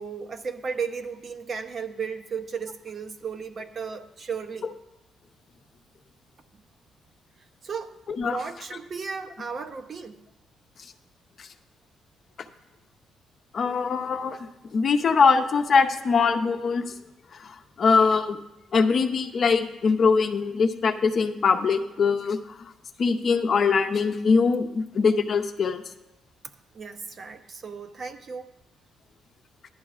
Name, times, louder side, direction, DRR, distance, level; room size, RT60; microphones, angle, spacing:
voice 1, 0.0-4.7 7.6-10.2 26.7-28.5, right 5 dB, 50° right, 7 dB, 0.7 m, -35 dB
voice 2, 13.5-16.9 17.3-18.4 18.7-22.7 23.0-25.8, left 5 dB, 50° left, 7 dB, 0.7 m, -22 dB
14.5 x 11.0 x 2.4 m, 0.91 s
cardioid pair, 90°, 0 cm